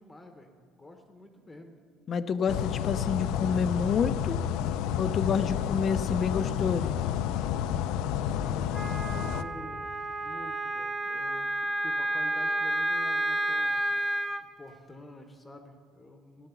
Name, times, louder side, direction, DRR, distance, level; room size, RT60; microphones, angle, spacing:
voice 1, 0.0-1.7 8.2-9.8 10.2-13.9 14.6-16.5, left 1 dB, 10° left, 5 dB, 0.9 m, -48 dB
voice 2, 2.1-4.4 5.0-7.0, left 6 dB, 35° left, 12 dB, 0.5 m, -28 dB
sound 1, 2.5-9.4, left 9 dB, 90° left, 0.5 m, -30 dB
Wind instrument woodwind instrument, 8.7-14.4, right 1 dB, 10° right, 0.6 m, -30 dB
15.5 x 10.5 x 7.0 m, 2.2 s
cardioid pair, 160°, 0 cm